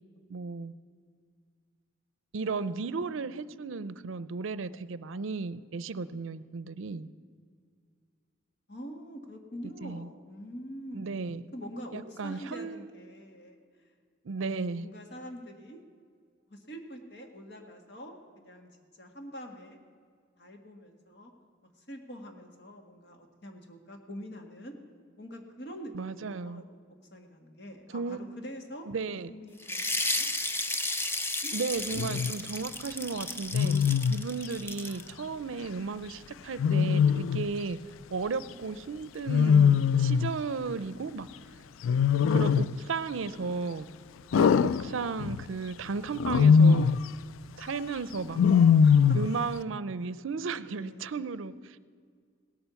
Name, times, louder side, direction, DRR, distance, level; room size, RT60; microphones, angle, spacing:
voice 1, 0.3-0.7 2.3-7.1 9.8-10.1 10.9-11.4 11.9-12.9 14.2-14.9 25.9-26.6 27.9-28.2 28.9-29.3 31.5-33.8 34.1-37.8 38.1-41.3 42.3-43.9 44.4-47.0 47.6-48.4 49.1-51.8, right 4 dB, 80° right, 16 dB, 0.5 m, -34 dB
voice 2, 2.4-3.2 8.7-11.2 11.5-13.6 14.4-15.8 16.5-19.8 20.4-21.3 21.6-24.7 25.2-26.6 27.1-30.3 31.4-32.3 35.5-35.7 48.8-49.2 50.0-50.2 50.6-51.2, equal, 55° left, 4 dB, 1.7 m, -45 dB
sound 1, 29.6-35.1, left 2 dB, 10° left, 0.5 m, -33 dB
Wild animals, 31.9-32.3 33.5-34.2 36.6-37.5 39.3-40.4 41.8-42.8 44.3-45.4 46.2-47.1 48.4-49.4, left 6 dB, 85° left, 0.3 m, -22 dB
17.5 x 8.9 x 7.0 m, 2.1 s
head